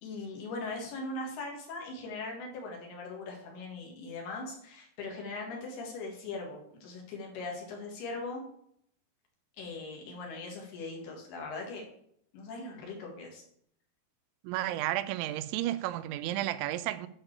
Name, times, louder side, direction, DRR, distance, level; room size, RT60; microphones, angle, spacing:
voice 1, 0.0-8.4 9.6-11.8 12.3-13.4, left 3 dB, 65° left, 3.7 m, -40 dB
voice 2, 14.4-17.1, right 14 dB, 85° right, 2.9 m, -32 dB
8.8 x 4.7 x 7.3 m
omnidirectional pair, 5.2 m